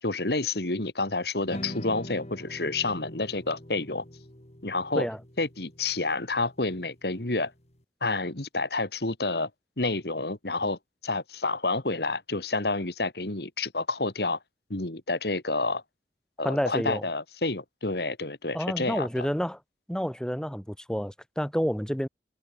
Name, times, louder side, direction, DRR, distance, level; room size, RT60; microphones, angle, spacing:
voice 1, 0.0-4.0 4.6-5.1 5.4-7.5 8.0-9.5 9.8-10.8 11.0-14.4 14.7-15.8 16.4-19.3, left 3 dB, 60° left, 2.3 m, -29 dB
sound 1, 1.5-7.8, equal, 35° left, 4.2 m, -44 dB
voice 2, 16.4-17.1 18.5-19.6 19.9-22.1, equal, 5° left, 3.2 m, -29 dB
head